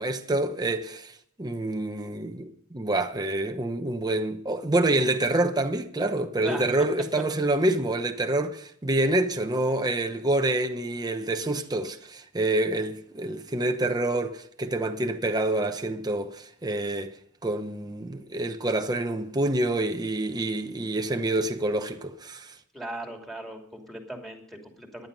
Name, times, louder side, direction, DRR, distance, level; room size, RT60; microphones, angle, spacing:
voice 1, 0.0-17.2 17.4-22.5, right 2 dB, 20° right, 0.9 m, -27 dB
voice 2, 22.7-25.1, right 1 dB, ahead, 2.8 m, -38 dB
15.0 x 11.0 x 5.4 m
head